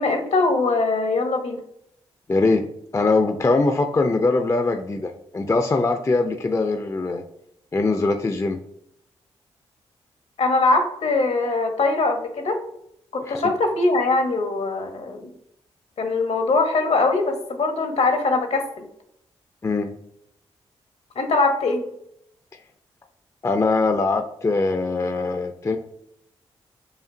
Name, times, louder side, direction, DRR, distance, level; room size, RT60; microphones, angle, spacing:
voice 1, 0.0-1.6 10.4-12.6 13.1-15.3 16.0-18.9 21.2-21.8, left 3 dB, 60° left, 5 dB, 0.8 m, -22 dB
voice 2, 2.3-2.7 2.9-7.2 7.7-8.6 13.3-13.5 19.6-19.9 23.4-25.8, left 3 dB, 25° left, 5 dB, 0.4 m, -22 dB
5.0 x 2.4 x 2.6 m, 0.74 s
supercardioid pair, 40°, 12 cm